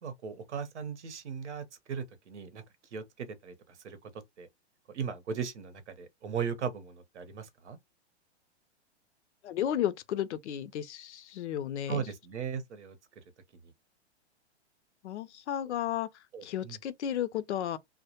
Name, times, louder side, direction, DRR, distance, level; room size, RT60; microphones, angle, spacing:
voice 1, 0.0-2.6 2.9-3.5 3.8-4.0 4.4-4.5 4.9-7.8 11.9-13.0 16.3-16.8, right 6 dB, 90° right, 0.8 m, -37 dB
voice 2, 9.4-12.0 15.0-16.1 16.4-17.8, left 10 dB, 80° left, 0.5 m, -33 dB
2.1 x 2.1 x 2.8 m
hypercardioid pair, 135°, 34 cm